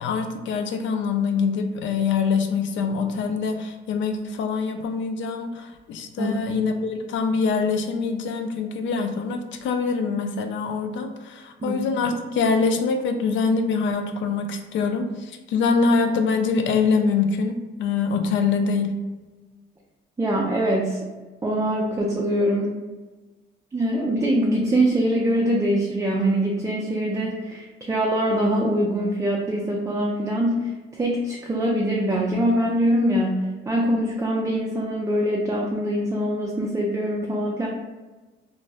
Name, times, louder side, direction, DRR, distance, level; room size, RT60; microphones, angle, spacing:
voice 1, 0.0-18.9, left 5 dB, 70° left, 6 dB, 0.4 m, -24 dB
voice 2, 20.2-21.1 21.4-22.8 23.7-37.7, right 1 dB, 15° right, -2 dB, 0.4 m, -23 dB
2.5 x 2.0 x 3.4 m, 1.2 s
cardioid pair, 90°, 20 cm